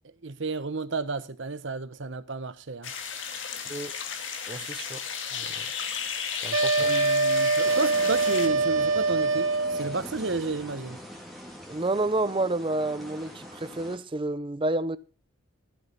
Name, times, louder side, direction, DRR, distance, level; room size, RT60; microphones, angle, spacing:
voice 1, 0.2-3.2 4.6-4.7 6.8-11.0, right 3 dB, 60° right, 1.0 m, -32 dB
sound 1, 2.8-8.5, left 7 dB, 60° left, 2.2 m, -34 dB
voice 2, 4.5-5.0 5.3-5.5 6.4-6.9 11.7-15.0, right 2 dB, 25° right, 0.6 m, -29 dB
sound 2, 6.5-10.0, right 3 dB, 80° right, 1.7 m, -24 dB
sound 3, 7.6-14.0, equal, ahead, 2.9 m, -43 dB
14.0 x 8.0 x 5.5 m
head